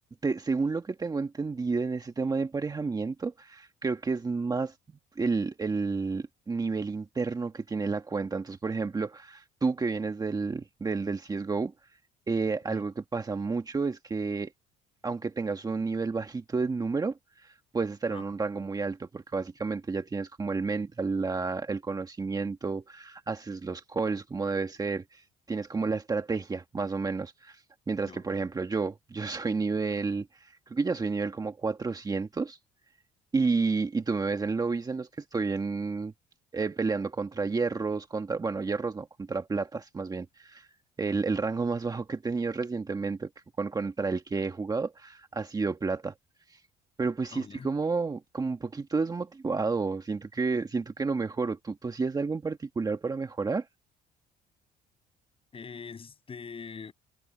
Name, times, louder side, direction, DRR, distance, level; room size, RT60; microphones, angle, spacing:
voice 1, 0.2-4.7 5.2-11.7 12.3-14.5 15.0-17.5 17.7-32.6 33.3-36.1 36.5-40.7 41.0-43.3 43.6-46.1 46.5-46.6 47.0-53.7, right 4 dB, 20° right, 1.5 m, -31 dB
voice 2, 47.3-47.7 55.5-56.9, left 5 dB, 35° left, 8.0 m, -43 dB
cardioid pair, 110°, 17 cm